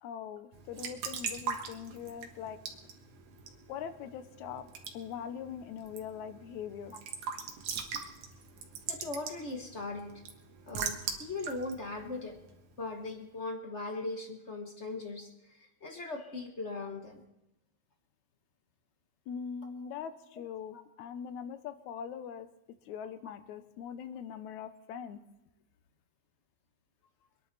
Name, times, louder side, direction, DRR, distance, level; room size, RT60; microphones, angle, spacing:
voice 1, 0.0-2.6 3.7-4.7 4.9-7.0 19.3-22.5 22.9-25.2, left 8 dB, 85° left, 10 dB, 2.3 m, -42 dB
Raindrop / Drip / Trickle dribble, 0.5-13.0, right 6 dB, 85° right, 2.9 m, -42 dB
voice 2, 8.9-10.2 10.7-12.4 12.8-17.2 19.6-19.9 20.7-20.8, left 2 dB, 40° left, 4 dB, 0.9 m, -39 dB
25.0 x 10.5 x 4.1 m, 0.89 s
omnidirectional pair, 3.3 m